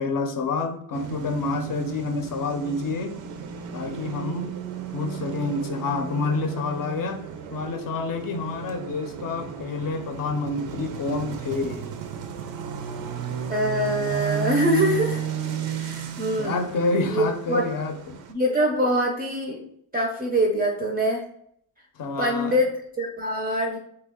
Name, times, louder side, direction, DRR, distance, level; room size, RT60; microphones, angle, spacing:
voice 1, 0.0-3.1 3.7-4.5 4.9-7.2 7.5-11.9 16.4-18.2 22.0-22.6, left 3 dB, 50° left, 6 dB, 0.6 m, -28 dB
sound 1, 0.9-18.3, right 8 dB, 80° right, 0.5 m, -34 dB
voice 2, 13.5-15.2 15.7-16.7 17.1-17.7 18.3-19.6 19.9-21.2 22.2-23.8, equal, 20° right, 0 dB, 0.4 m, -24 dB
2.7 x 2.2 x 3.5 m, 0.68 s
cardioid pair, 90°, 43 cm